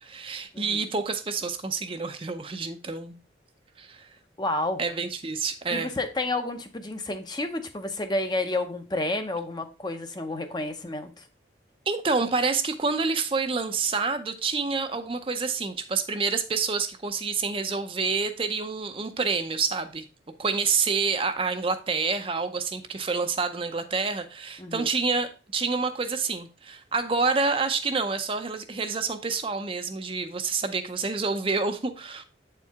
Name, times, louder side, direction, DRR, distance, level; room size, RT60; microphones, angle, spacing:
voice 1, 0.0-3.2 3.8-4.1 4.8-5.9 11.9-20.0 20.4-32.2, right 4 dB, 30° right, 0.5 m, -28 dB
voice 2, 4.4-4.8 5.7-11.2 24.6-24.9, left 2 dB, 25° left, 0.6 m, -30 dB
8.1 x 4.5 x 3.5 m
head